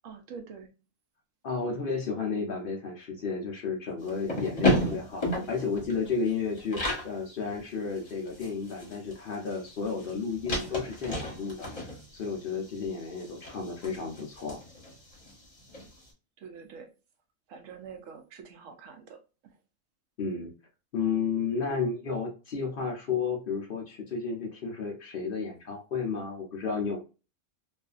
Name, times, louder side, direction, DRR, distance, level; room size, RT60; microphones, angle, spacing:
voice 1, 0.0-0.7 16.4-16.9 17.5-19.5, right 6 dB, 65° right, 0.9 m, -46 dB
voice 2, 1.4-14.6 20.2-20.5 20.9-27.0, left 5 dB, 65° left, 0.5 m, -32 dB
sound 1, 4.0-7.1 7.5-7.6 7.9-15.9, left 1 dB, 30° left, 0.8 m, -33 dB
2.6 x 2.4 x 2.3 m
omnidirectional pair, 1.6 m